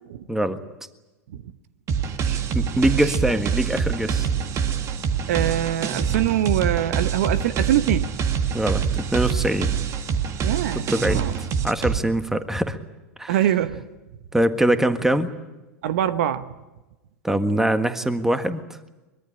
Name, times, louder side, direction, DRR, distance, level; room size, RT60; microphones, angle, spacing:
sound 1, 1.9-12.0, right 7 dB, 40° right, 1.9 m, -25 dB
voice 1, 2.5-4.3 8.5-9.7 10.9-12.8 13.2-13.3 14.3-15.3 17.2-18.6, right 1 dB, 5° right, 9 dB, 1.6 m, -23 dB
voice 2, 5.3-8.1 10.4-11.4 13.3-13.9 15.8-16.5, right 11 dB, 65° right, 13 dB, 1.1 m, -24 dB
23.5 x 22.0 x 8.7 m, 1.1 s
hypercardioid pair, 95°, 8 cm